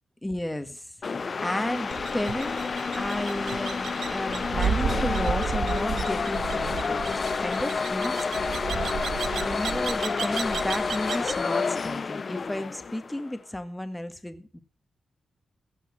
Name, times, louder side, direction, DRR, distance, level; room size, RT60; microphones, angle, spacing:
voice 1, 0.2-2.6 2.9-8.2 9.2-14.6, left 1 dB, 10° left, 9 dB, 1.6 m, -33 dB
sound 1, 1.0-13.3, left 4 dB, 50° left, 0.5 m, -29 dB
sound 2, 1.9-11.4, right 7 dB, 75° right, 0.8 m, -33 dB
16.0 x 5.7 x 7.2 m, 0.41 s
cardioid pair, 65°, 0 cm